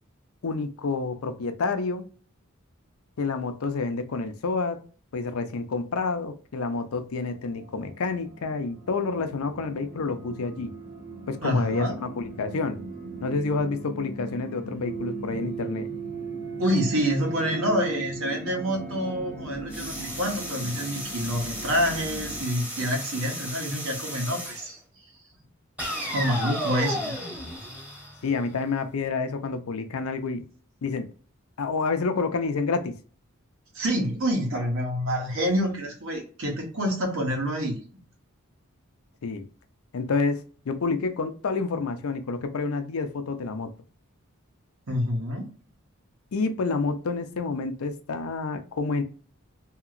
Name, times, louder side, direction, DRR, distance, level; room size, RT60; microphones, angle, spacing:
voice 1, 0.4-2.1 3.2-4.8 5.1-10.7 11.3-12.8 13.2-15.9 28.2-30.4 30.8-31.1 31.6-33.0 39.2-39.4 39.9-43.7 46.3-49.0, left 4 dB, 75° left, 8 dB, 0.5 m, -28 dB
sound 1, 7.3-22.4, right 2 dB, 45° right, 1.0 m, -38 dB
voice 2, 11.4-12.0 16.6-24.8 25.9-27.1 33.7-37.8 44.9-45.5, equal, 65° right, 1 dB, 1.2 m, -27 dB
sound 2, 19.7-24.7 25.8-28.7, equal, 5° right, 0.9 m, -34 dB
2.9 x 2.8 x 2.4 m, 0.40 s
head